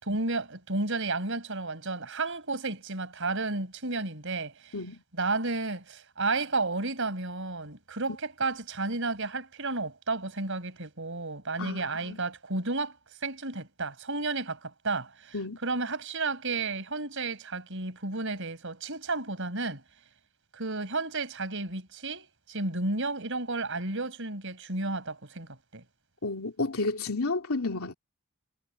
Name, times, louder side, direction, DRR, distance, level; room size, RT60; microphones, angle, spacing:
voice 1, 0.0-4.7 5.2-15.4 15.6-19.8 20.5-25.8, right 3 dB, 60° right, 5.2 m, -32 dB
voice 2, 11.6-12.2 15.3-15.6 26.2-27.9, left 3 dB, 80° left, 2.9 m, -31 dB
head